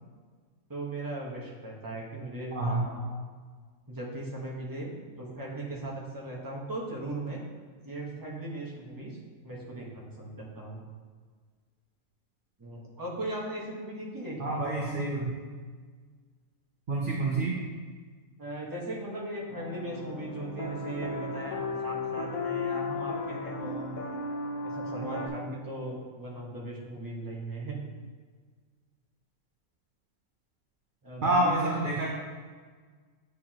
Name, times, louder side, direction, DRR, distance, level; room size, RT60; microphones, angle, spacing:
voice 1, 0.7-3.2 3.9-7.4 7.8-9.2 9.4-10.8 12.6-15.2 18.4-24.0 24.6-27.8 31.0-31.7, right 2 dB, 15° right, -4 dB, 1.1 m, -38 dB
voice 2, 2.5-2.8 14.4-15.3 16.9-17.6 31.2-32.1, right 2 dB, 45° right, -2 dB, 0.8 m, -27 dB
sound 1, 19.5-25.3, left 3 dB, 70° left, 1.3 m, -35 dB
9.0 x 4.8 x 3.0 m, 1.5 s
omnidirectional pair, 1.5 m